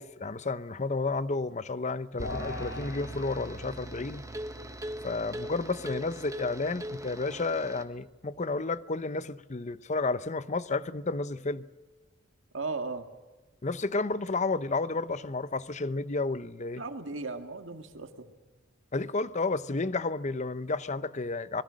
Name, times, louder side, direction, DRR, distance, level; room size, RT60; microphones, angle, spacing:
voice 1, 0.0-4.2 5.0-11.7 13.6-16.8 18.9-21.6, left 3 dB, 35° left, 0.7 m, -31 dB
sound 1, 2.2-7.7, equal, 60° left, 4.2 m, -42 dB
sound 2, 2.2-7.8, right 1 dB, 15° right, 1.3 m, -42 dB
voice 2, 12.5-13.1 16.8-18.3, right 3 dB, 70° right, 2.0 m, -36 dB
25.5 x 22.0 x 6.4 m
head